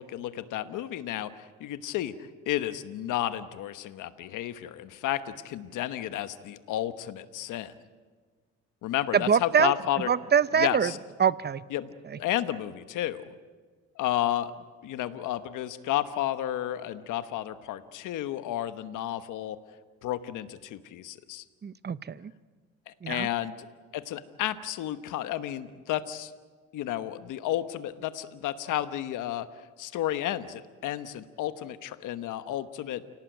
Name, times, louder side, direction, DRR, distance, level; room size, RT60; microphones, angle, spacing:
voice 1, 0.0-7.7 8.8-10.1 10.6-11.0 11.7-13.2 14.0-14.5 14.8-19.6 20.0-21.4 22.9-23.7 23.9-26.3 26.7-29.5 29.8-33.0, left 12 dB, 85° left, 12 dB, 1.2 m, -32 dB
voice 2, 9.1-9.7 10.1-10.9 11.2-11.6 21.6-22.3 23.0-23.3, right 7 dB, 35° right, 16 dB, 0.8 m, -24 dB
29.5 x 18.0 x 9.2 m, 1.5 s
cardioid pair, 90°, 30 cm